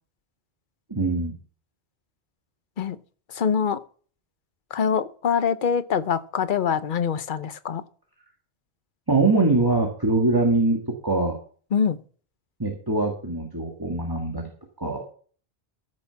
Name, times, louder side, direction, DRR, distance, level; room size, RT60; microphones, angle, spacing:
voice 1, 0.9-1.4 9.1-10.8 11.0-11.4 12.6-14.5 14.8-15.0, right 3 dB, 20° right, 0 dB, 1.8 m, -23 dB
voice 2, 3.3-3.8 4.7-7.8 11.7-12.0, left 7 dB, 55° left, 13 dB, 0.9 m, -24 dB
14.0 x 6.5 x 5.8 m, 0.44 s
omnidirectional pair, 1.1 m